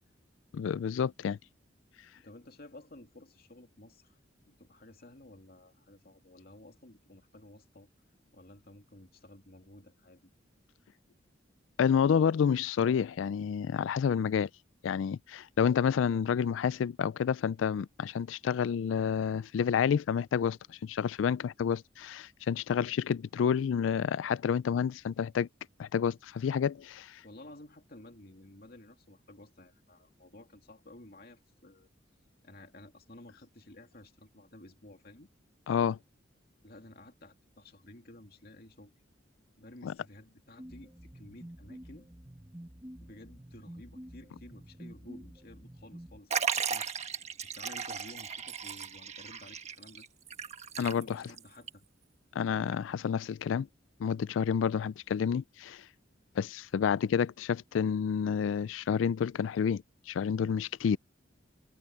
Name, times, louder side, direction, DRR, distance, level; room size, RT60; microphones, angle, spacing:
voice 1, 0.5-1.4 11.8-14.5 14.8-25.5 25.8-27.2 35.7-36.0 39.8-39.9 50.8-51.2 52.3-53.7 54.0-55.9 56.4-61.0, left 7 dB, 90° left, 0.3 m, -29 dB
voice 2, 2.1-4.2 4.5-7.9 8.3-10.3 27.2-31.9 32.4-35.3 36.6-38.9 39.6-42.1 43.0-47.0 47.4-50.0 50.7-51.8, left 1 dB, 55° left, 2.5 m, -53 dB
sound 1, 40.6-46.2, equal, 15° right, 1.2 m, -49 dB
Liquid, 46.3-51.4 51.7-51.8 52.7-52.8, right 6 dB, 35° right, 1.4 m, -36 dB
open air
head